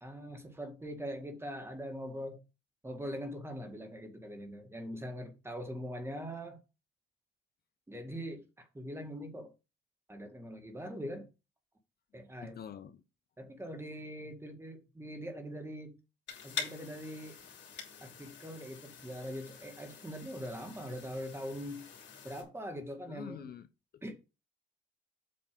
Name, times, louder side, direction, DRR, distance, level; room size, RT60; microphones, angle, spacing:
voice 1, 0.0-2.4 2.8-6.6 7.9-9.5 10.1-11.3 12.1-12.6 13.4-16.0 16.4-17.4 18.0-21.9 22.2-23.5 24.0-24.1, equal, 10° right, 1.9 m, -42 dB
voice 2, 12.4-13.0 23.1-23.7 23.9-24.1, left 9 dB, 50° left, 0.6 m, -46 dB
sound 1, 16.3-22.4, left 6 dB, 65° left, 2.8 m, -46 dB
7.6 x 3.3 x 5.1 m
cardioid pair, 90°, 20 cm